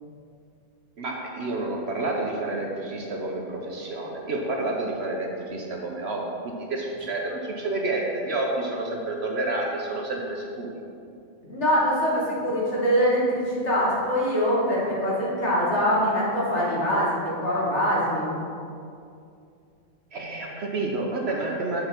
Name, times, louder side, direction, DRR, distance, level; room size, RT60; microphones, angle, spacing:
voice 1, 1.0-10.8 20.1-21.9, right 2 dB, 55° right, 0 dB, 1.0 m, -29 dB
voice 2, 11.4-18.3, equal, 55° left, -7 dB, 2.4 m, -23 dB
7.2 x 5.6 x 5.9 m, 2.5 s
omnidirectional pair, 1.4 m